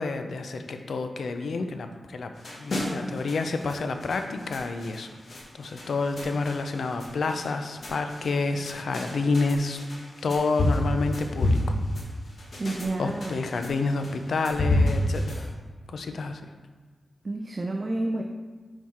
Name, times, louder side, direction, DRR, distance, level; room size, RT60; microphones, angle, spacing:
voice 1, 0.0-5.1 5.6-9.8 10.2-11.6 13.0-15.5 15.9-16.4, left 3 dB, 80° left, 7 dB, 0.5 m, -29 dB
sound 1, 2.4-15.5, left 1 dB, 60° left, 1.3 m, -30 dB
voice 2, 12.6-13.4 17.2-18.2, right 2 dB, 40° right, 1 dB, 0.5 m, -29 dB
5.8 x 4.7 x 4.3 m, 1.4 s
cardioid pair, 75°, 0 cm